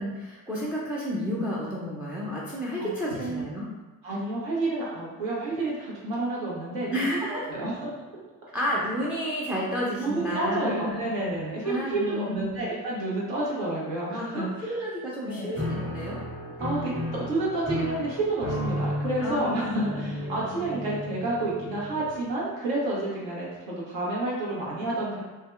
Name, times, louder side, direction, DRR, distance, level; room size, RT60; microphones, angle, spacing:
voice 1, 0.0-3.6 6.9-7.5 8.5-11.0 11.6-12.6 14.1-16.2 16.5-16.6 19.2-20.8, equal, 5° right, -5 dB, 0.3 m, -31 dB
voice 2, 2.8-3.4 4.0-7.8 10.0-14.7 15.3-15.6 16.6-25.2, right 2 dB, 65° right, -5 dB, 1.0 m, -30 dB
Piano, 15.6-22.3, left 1 dB, 25° right, 1.3 m, -34 dB
2.7 x 2.2 x 2.3 m, 1.2 s
hypercardioid pair, 40°, 49 cm